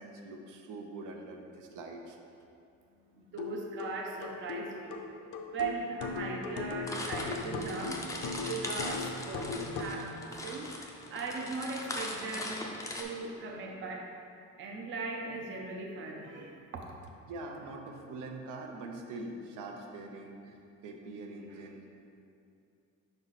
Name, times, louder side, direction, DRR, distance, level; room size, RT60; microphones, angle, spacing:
voice 1, 0.0-2.2 17.3-21.8, right 2 dB, 80° right, 2 dB, 0.8 m, -43 dB
voice 2, 3.1-5.1 5.3-8.0 8.3-12.7 13.0-14.1 14.6-16.9, right 3 dB, 40° right, 1 dB, 0.5 m, -39 dB
sound 1, 3.4-10.0, left 4 dB, 75° left, 0.6 m, -38 dB
sound 2, 6.9-13.0, left 2 dB, 10° left, 0.4 m, -40 dB
5.4 x 4.6 x 4.0 m, 2.6 s
cardioid pair, 160°, 31 cm